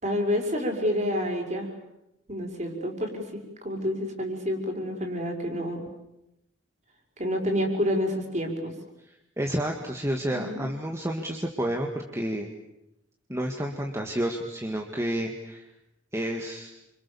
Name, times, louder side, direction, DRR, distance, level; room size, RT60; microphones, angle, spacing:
voice 1, 0.0-1.7 2.3-5.8 7.2-8.7 10.3-10.6, equal, 35° right, 2 dB, 5.7 m, -28 dB
voice 2, 9.4-12.5 13.3-15.6 16.1-16.7, right 1 dB, 15° right, 1 dB, 2.0 m, -30 dB
29.5 x 27.0 x 7.2 m, 0.89 s
head